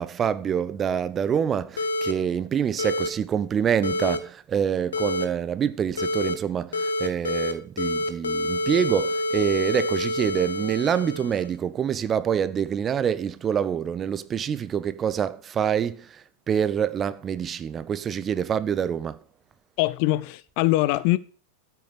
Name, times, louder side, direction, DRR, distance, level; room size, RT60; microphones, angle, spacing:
voice 1, 0.0-19.2, right 8 dB, 25° right, 0.8 m, -26 dB
sound 1, 1.8-2.1 2.8-3.1 3.8-4.2 4.9-5.2 6.0-6.3 6.7-7.5 7.8-11.5, left 1 dB, 70° left, 1.7 m, -27 dB
voice 2, 19.8-21.2, left 18 dB, 45° left, 0.8 m, -22 dB
13.5 x 8.4 x 6.7 m
figure-of-eight pair, 90°, 0 cm